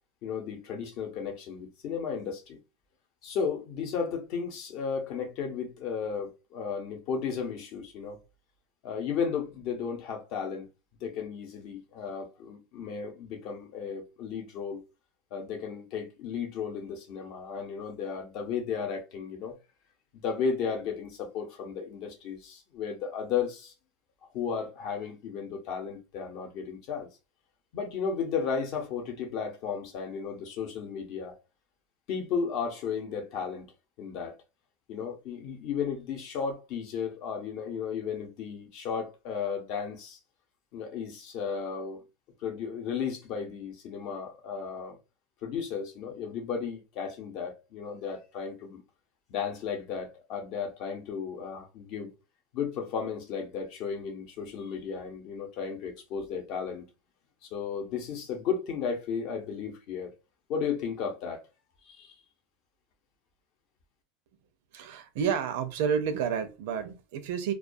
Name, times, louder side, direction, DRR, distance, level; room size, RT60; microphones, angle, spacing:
voice 1, 0.2-2.6 3.2-8.2 8.8-10.7 11.0-14.8 15.3-19.6 20.1-23.7 24.3-27.1 27.7-31.4 32.1-33.7 34.0-34.3 34.9-40.2 40.7-42.0 42.4-45.0 45.4-48.8 49.3-52.1 52.5-56.8 57.4-60.1 60.5-61.4 61.8-62.1, left 6 dB, 50° left, 0.7 m, -34 dB
voice 2, 64.7-67.5, right 7 dB, 70° right, 0.5 m, -30 dB
2.3 x 2.2 x 2.5 m
supercardioid pair, 155°, 0 cm